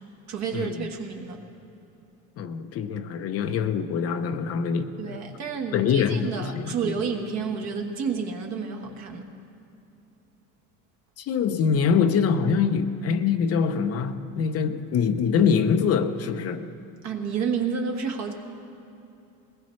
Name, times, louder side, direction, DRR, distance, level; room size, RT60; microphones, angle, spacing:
voice 1, 0.3-1.4 5.0-9.3 17.0-18.3, right 6 dB, 50° right, 3 dB, 1.5 m, -30 dB
voice 2, 2.4-5.2 5.7-6.9 11.2-16.6, left 6 dB, 45° left, 8 dB, 0.7 m, -24 dB
21.0 x 19.5 x 3.2 m, 2.8 s
cardioid pair, 160°, 35 cm